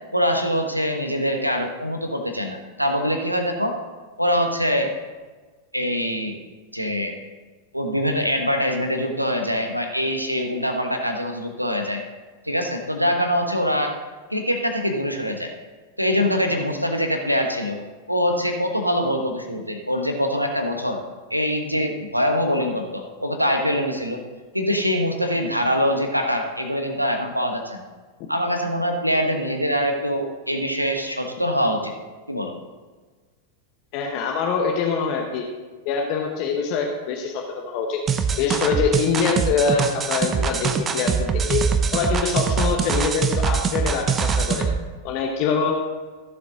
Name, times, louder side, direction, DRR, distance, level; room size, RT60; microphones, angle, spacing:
voice 1, 0.1-3.8 4.2-4.9 5.7-6.4 6.7-7.1 7.7-12.0 12.4-13.9 14.3-15.5 16.0-17.8 18.1-21.0 21.3-24.2 24.5-27.8 28.3-31.9 32.3-32.5, equal, 90° right, 4 dB, 1.2 m, -24 dB
voice 2, 33.9-35.4 35.8-38.0 38.4-41.6 41.9-44.7 45.0-45.7, left 5 dB, 45° left, 1 dB, 1.2 m, -24 dB
sound 1, 38.1-44.8, right 6 dB, 25° right, 0.9 m, -23 dB
15.0 x 7.4 x 4.0 m, 1.4 s
figure-of-eight pair, 90°, 0 cm